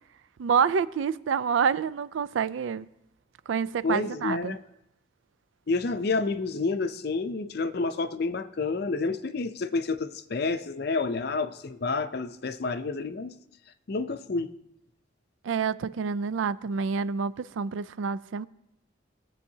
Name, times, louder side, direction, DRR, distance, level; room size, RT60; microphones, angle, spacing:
voice 1, 0.4-2.9 3.5-4.6 15.4-18.5, right 6 dB, 80° right, 0.4 m, -27 dB
voice 2, 3.8-4.6 5.7-13.3 13.9-14.5, left 3 dB, 55° left, 0.5 m, -29 dB
19.5 x 7.8 x 2.8 m
head